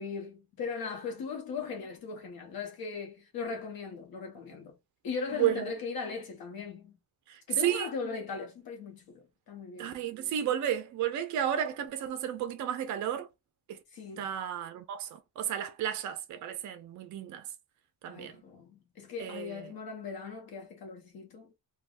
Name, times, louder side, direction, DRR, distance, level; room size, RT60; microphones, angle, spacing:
voice 1, 0.0-4.8 5.0-7.0 7.5-10.0 13.9-14.3 18.1-21.5, left 5 dB, 55° left, 1.0 m, -39 dB
voice 2, 5.3-5.7 7.3-7.9 9.8-13.3 13.7-13.8 14.2-17.5 18.0-18.4 19.2-19.7, right 10 dB, 45° right, 0.4 m, -32 dB
3.3 x 2.3 x 2.4 m
cardioid pair, 180°, 43 cm